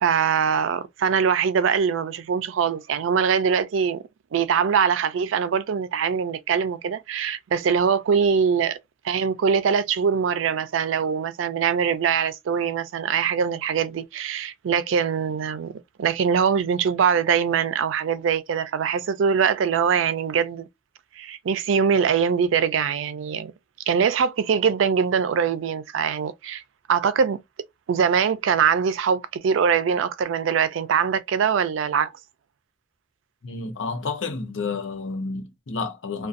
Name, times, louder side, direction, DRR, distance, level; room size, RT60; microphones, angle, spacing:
voice 1, 0.0-4.0 4.3-8.8 9.0-20.7 21.2-23.5 23.9-26.6 26.9-27.4 27.9-32.1, right 7 dB, 85° right, 0.4 m, -22 dB
voice 2, 33.4-36.3, left 4 dB, 75° left, 0.7 m, -30 dB
2.4 x 2.2 x 2.5 m
head